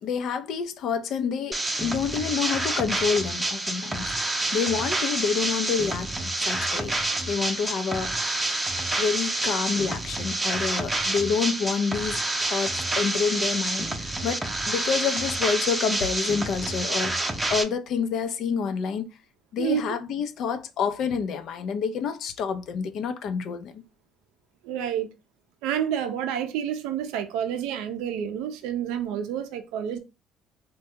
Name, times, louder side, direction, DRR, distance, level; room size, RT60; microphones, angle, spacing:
voice 1, 0.0-7.0 7.3-8.5 9.0-19.1 19.5-23.8, left 6 dB, 65° left, 0.6 m, -28 dB
sound 1, 1.5-17.6, right 2 dB, 15° right, 0.6 m, -28 dB
voice 2, 24.6-25.1 25.6-30.0, right 9 dB, 85° right, 0.4 m, -29 dB
3.3 x 2.2 x 2.8 m
supercardioid pair, 80°, 0 cm